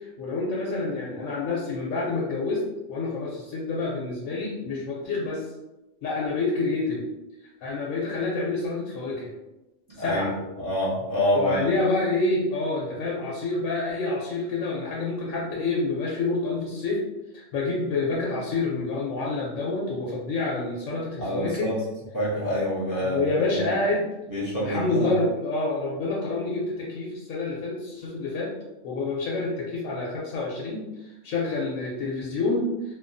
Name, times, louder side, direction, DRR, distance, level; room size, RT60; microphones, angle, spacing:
voice 1, 0.0-2.6 2.9-5.5 6.0-7.0 7.6-9.3 10.0-10.3 11.3-17.0 17.3-21.7 23.0-24.1 24.6-28.5 28.8-32.7, left 3 dB, 80° left, -4 dB, 1.0 m, -28 dB
voice 2, 9.9-11.7 21.2-21.7 22.1-23.7 24.3-25.1, equal, 15° right, -10 dB, 0.8 m, -27 dB
2.9 x 2.2 x 2.5 m, 1.0 s
omnidirectional pair, 1.4 m